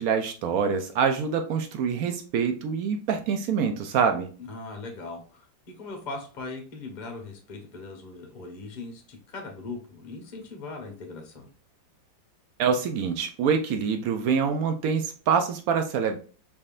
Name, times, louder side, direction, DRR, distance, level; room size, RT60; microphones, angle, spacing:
voice 1, 0.0-4.3 12.6-16.2, right 6 dB, 75° right, 6 dB, 0.8 m, -25 dB
voice 2, 4.4-5.5 5.8-11.5, left 3 dB, 35° left, 3 dB, 0.8 m, -39 dB
5.1 x 3.5 x 2.4 m, 0.38 s
omnidirectional pair, 2.1 m